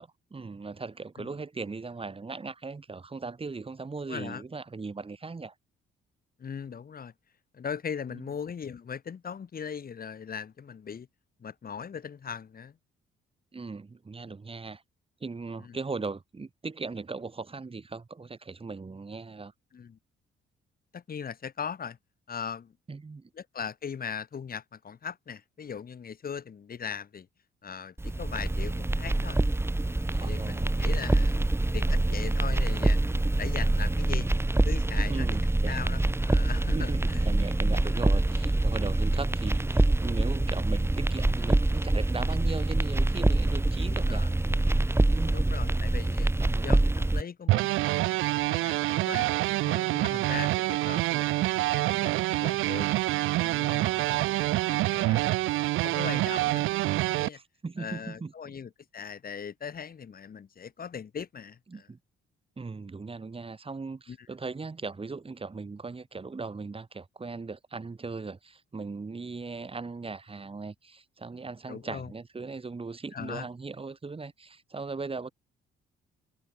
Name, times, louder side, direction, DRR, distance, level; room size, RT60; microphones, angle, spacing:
voice 1, 0.0-5.5 8.1-8.2 13.5-14.8 15.2-19.5 22.9-23.3 30.1-30.9 35.1-35.8 36.7-44.3 45.1-45.6 46.4-46.7 50.1-50.3 53.7-54.3 57.3-58.3 61.7-62.0 62.6-75.3, right 4 dB, 30° right, 7.1 m, -38 dB
voice 2, 4.1-4.4 6.4-7.1 7.5-11.1 11.4-12.8 15.6-15.8 19.7-20.0 20.9-22.0 22.3-22.7 23.3-27.3 27.6-29.4 29.9-31.4 31.7-33.0 33.3-34.3 34.6-35.3 35.7-37.2 43.9-44.3 45.3-46.3 46.6-47.9 48.4-49.3 49.6-52.9 53.3-55.3 55.8-56.6 57.0-57.4 57.8-61.9 64.1-64.2 71.7-72.1 73.1-73.5, left 7 dB, 50° left, 7.0 m, -39 dB
sound 1, 28.0-47.2, right 2 dB, 10° right, 3.5 m, -25 dB
sound 2, 47.5-57.3, right 18 dB, 90° right, 0.7 m, -26 dB
cardioid pair, 90°, 20 cm